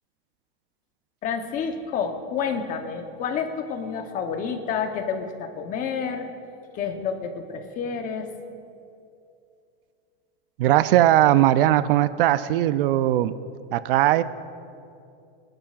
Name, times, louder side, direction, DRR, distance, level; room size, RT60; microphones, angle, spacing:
voice 1, 1.2-6.3 6.7-8.3, left 6 dB, 25° left, 6 dB, 0.9 m, -29 dB
voice 2, 10.6-13.3 13.7-14.2, right 13 dB, 60° right, 14 dB, 0.5 m, -19 dB
27.0 x 11.5 x 2.4 m, 2.5 s
supercardioid pair, 155°, 31 cm